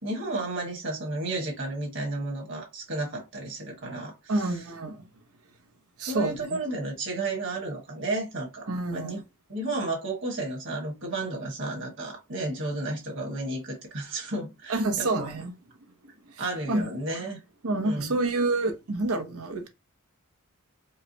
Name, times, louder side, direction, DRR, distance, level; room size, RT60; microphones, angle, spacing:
voice 1, 0.0-4.1 6.0-9.2 9.5-15.3 16.4-17.4 17.8-18.1, right 2 dB, 55° right, 1.5 m, -32 dB
voice 2, 4.3-5.1 6.0-6.6 8.7-9.2 14.7-15.5 16.3-16.9 17.6-19.7, right 2 dB, 75° right, 0.8 m, -28 dB
4.7 x 2.1 x 2.8 m
head